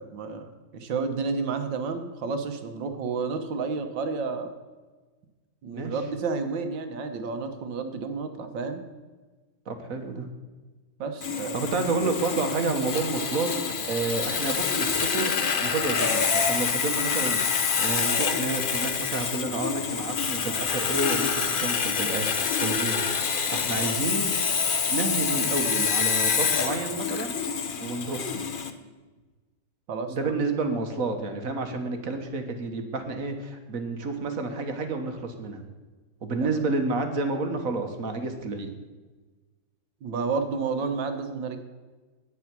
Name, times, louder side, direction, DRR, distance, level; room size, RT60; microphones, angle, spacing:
voice 1, 0.0-4.5 5.6-8.8 11.0-11.7 29.9-30.3 36.4-36.5 40.0-41.6, right 4 dB, 75° right, 7 dB, 1.8 m, -31 dB
voice 2, 9.7-10.3 11.5-13.5 13.9-21.3 21.6-23.0 23.5-24.3 24.9-27.4 27.8-28.5 30.1-35.6 36.2-38.7, right 3 dB, 50° right, 6 dB, 1.5 m, -30 dB
Sawing, 11.2-28.7, left 6 dB, 65° left, 0.5 m, -27 dB
9.6 x 9.3 x 6.0 m, 1.3 s
omnidirectional pair, 2.0 m